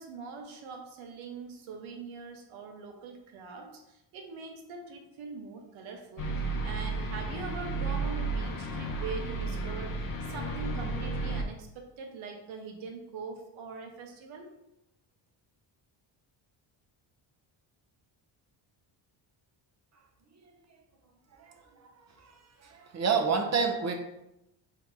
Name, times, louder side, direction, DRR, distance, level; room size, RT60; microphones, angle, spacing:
voice 1, 0.0-14.5, right 4 dB, 75° right, 3 dB, 0.9 m, -42 dB
sound 1, 6.2-11.4, right 3 dB, 45° left, 0.6 m, -33 dB
voice 2, 21.4-21.8 22.2-22.3 22.6-23.9, right 5 dB, 35° right, 4 dB, 0.6 m, -29 dB
4.1 x 2.8 x 3.5 m, 0.86 s
cardioid pair, 115°, 48 cm